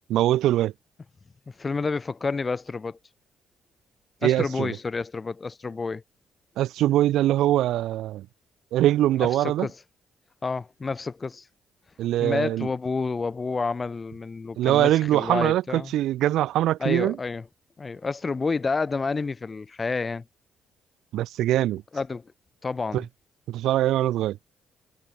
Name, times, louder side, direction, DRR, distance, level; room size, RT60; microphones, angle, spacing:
voice 1, 0.1-0.7 4.2-4.8 6.6-8.3 8.7-9.7 12.0-12.7 14.6-17.2 21.1-21.8 22.9-23.0 23.5-24.4, right 13 dB, 85° right, 0.8 m, -22 dB
voice 2, 1.5-3.0 4.2-6.0 9.2-9.7 10.4-11.5 12.2-15.9 16.8-17.4 17.8-20.3 21.9-22.3 22.6-23.1, left 4 dB, 30° left, 7.3 m, -29 dB
cardioid pair, 90°, 0 cm